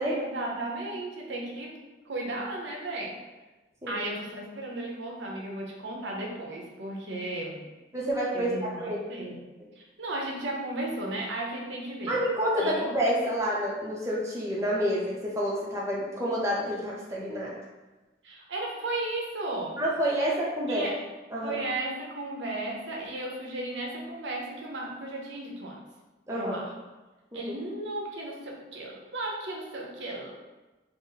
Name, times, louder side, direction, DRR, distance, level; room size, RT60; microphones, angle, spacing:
voice 1, 0.0-1.8 2.1-3.2 3.9-7.6 8.3-9.4 9.8-12.1 12.6-12.9 18.2-19.8 20.7-20.9 21.4-25.8 26.3-26.7 27.3-30.3, right 2 dB, 75° right, -1 dB, 0.7 m, -35 dB
voice 2, 7.9-8.5 8.8-9.0 12.1-17.5 19.8-20.9 21.3-21.6 26.3-26.6 27.3-27.5, equal, 15° right, -5 dB, 0.6 m, -28 dB
3.9 x 2.0 x 3.9 m, 1.1 s
head